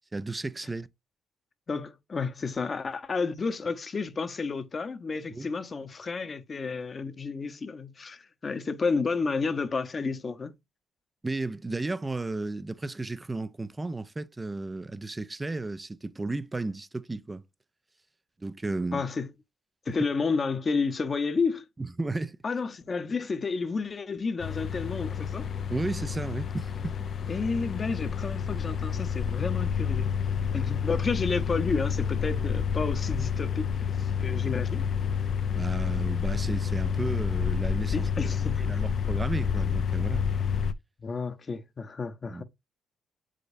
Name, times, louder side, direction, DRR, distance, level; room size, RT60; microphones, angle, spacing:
voice 1, 0.1-0.9 5.3-5.5 11.2-17.4 18.4-19.0 21.8-22.4 25.7-27.0 35.5-40.3 42.3-42.4, right 2 dB, 20° right, 0.5 m, -34 dB
voice 2, 1.7-10.5 18.9-19.3 19.9-21.6 22.4-25.5 27.3-30.1 30.5-34.9 37.9-38.8 41.0-42.4, left 4 dB, 35° left, 0.9 m, -31 dB
sound 1, 24.4-40.7, left 7 dB, 55° left, 0.5 m, -29 dB
7.6 x 5.0 x 2.6 m
cardioid pair, 90°, 0 cm